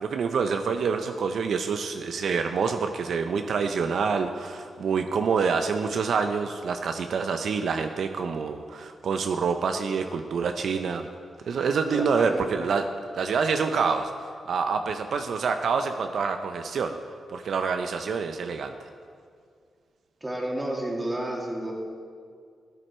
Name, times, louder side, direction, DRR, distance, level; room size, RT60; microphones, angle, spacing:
voice 1, 0.0-11.1 11.5-12.8 13.1-14.1 14.5-17.0 17.3-18.7, right 5 dB, 70° right, 6 dB, 0.5 m, -27 dB
voice 2, 11.9-12.5 20.2-21.7, right 1 dB, 15° right, -1 dB, 2.3 m, -31 dB
14.5 x 8.0 x 4.3 m, 2.2 s
cardioid pair, 75°, 0 cm